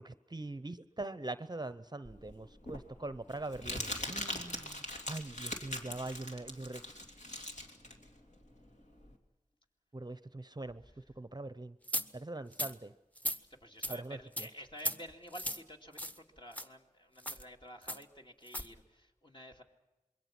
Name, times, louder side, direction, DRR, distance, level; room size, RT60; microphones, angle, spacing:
voice 1, 0.0-4.7 5.1-6.8 9.9-10.8 11.2-11.7 12.1-12.9 13.9-14.5, right 2 dB, 30° right, 13 dB, 0.7 m, -42 dB
Crumpling crinkling, 2.1-9.1, left 1 dB, 60° left, 2.7 m, -42 dB
voice 2, 6.0-6.4 13.6-19.6, equal, 35° left, 2 dB, 2.4 m, -51 dB
sound 1, 11.9-12.1 12.5-12.7 13.2-13.4 13.8-14.0 14.4-14.5 14.8-15.0 15.3-15.6 16.0-16.2 16.5-16.7 17.2-17.4 17.9-18.0 18.5-18.7, equal, 10° left, 1.1 m, -36 dB
26.5 x 22.0 x 6.0 m, 1.0 s
wide cardioid pair, 55°, 14 cm